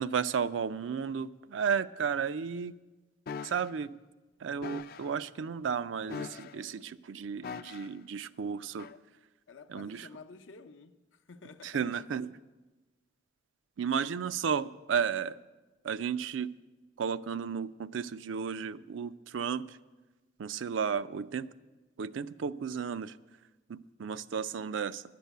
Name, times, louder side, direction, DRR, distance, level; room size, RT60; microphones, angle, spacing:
voice 1, 0.0-2.7 3.4-3.9 4.4-8.9 9.7-10.1 11.6-12.3 13.8-15.4 15.8-16.5 17.0-19.8 20.4-21.5 22.0-23.2 23.7-25.0, right 6 dB, 80° right, 0.4 m, -33 dB
sound 1, 3.3-3.7 4.6-5.1 6.1-6.7 7.4-8.0 8.8-9.0, left 5 dB, 55° left, 0.4 m, -41 dB
voice 2, 9.5-12.1, left 4 dB, 85° left, 0.7 m, -51 dB
11.0 x 6.9 x 9.1 m
head